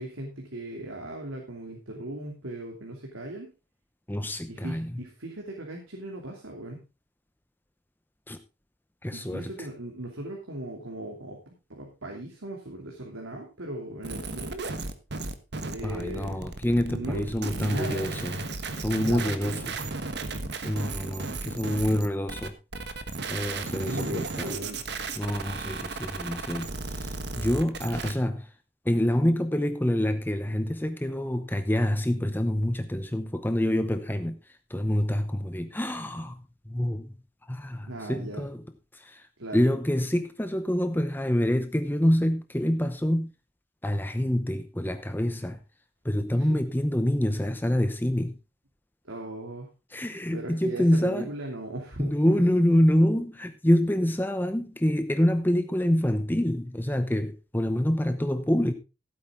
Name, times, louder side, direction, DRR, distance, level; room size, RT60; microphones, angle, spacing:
voice 1, 0.0-3.5 4.5-6.8 9.1-11.4 11.7-14.6 15.6-16.5 16.9-17.3 17.6-18.1 18.9-19.8 23.8-24.8 37.9-38.5 39.4-39.6 46.4-46.6 49.0-49.7 50.3-52.4, right 1 dB, 90° right, 3.0 m, -38 dB
voice 2, 4.1-5.0 8.3-8.4 9.0-9.7 15.8-18.4 18.8-19.6 20.6-22.5 23.3-24.5 25.2-26.7 26.9-28.5 28.8-34.4 34.7-37.1 37.5-38.6 38.9-39.2 39.5-43.3 43.8-45.6 46.0-48.4 49.9-51.3 52.0-58.7, equal, 10° left, 0.8 m, -26 dB
sound 1, 14.0-28.1, right 3 dB, 55° right, 1.4 m, -35 dB
15.5 x 9.0 x 3.7 m
head